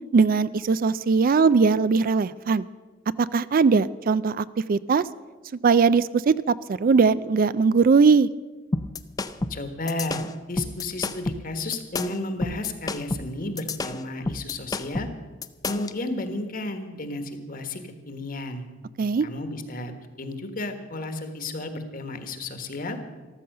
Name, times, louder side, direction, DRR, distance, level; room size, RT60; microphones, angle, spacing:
voice 1, 0.1-2.6 3.2-5.0 5.6-8.3 19.0-19.3, right 5 dB, 45° right, 17 dB, 0.4 m, -20 dB
sound 1, 8.7-16.0, left 2 dB, 20° left, 0.5 m, -30 dB
voice 2, 9.5-10.2 10.5-15.1 15.6-17.8 18.1-18.6 19.2-23.0, left 2 dB, 45° left, 8 dB, 1.5 m, -32 dB
14.0 x 13.0 x 6.7 m, 1.3 s
head